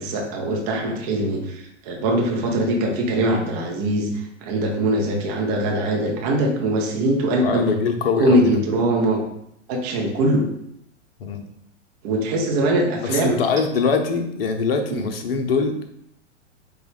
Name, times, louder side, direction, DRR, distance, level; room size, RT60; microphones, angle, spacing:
voice 1, 0.0-7.7 8.2-9.2 9.7-10.5 12.0-13.4, right 1 dB, 35° right, 1 dB, 0.7 m, -22 dB
voice 2, 7.4-8.6 11.2-11.4 13.0-15.7, left 5 dB, 50° left, 6 dB, 0.7 m, -23 dB
4.6 x 2.3 x 3.1 m, 0.74 s
figure-of-eight pair, 100°, 37 cm